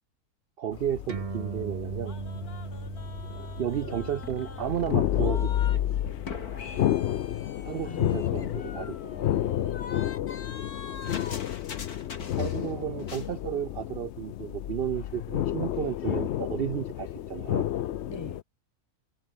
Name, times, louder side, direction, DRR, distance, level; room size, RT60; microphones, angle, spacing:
voice 1, 0.6-2.1 3.6-5.8 7.6-8.9 12.4-17.7, right 10 dB, 70° right, 0.5 m, -33 dB
sound 1, 0.7-18.4, left 12 dB, 60° left, 0.8 m, -31 dB
sound 2, 1.1-7.9, right 4 dB, 30° right, 0.9 m, -40 dB
sound 3, 2.1-5.8 6.0-12.7 13.0-13.3, left 5 dB, 85° left, 2.9 m, -43 dB
voice 2, 7.8-9.7 18.1-18.4, left 2 dB, 15° left, 2.9 m, -46 dB
omnidirectional pair, 1.6 m